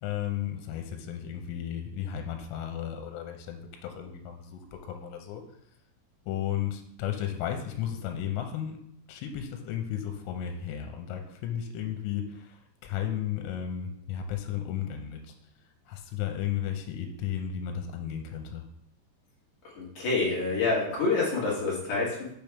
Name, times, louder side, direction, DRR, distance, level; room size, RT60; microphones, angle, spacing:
voice 1, 0.0-5.4 6.3-8.8 9.1-15.3 15.9-18.7, left 10 dB, 90° left, 5 dB, 3.3 m, -34 dB
voice 2, 19.6-22.4, left 3 dB, 55° left, -4 dB, 2.5 m, -27 dB
6.8 x 6.1 x 3.5 m, 0.72 s
omnidirectional pair, 5.6 m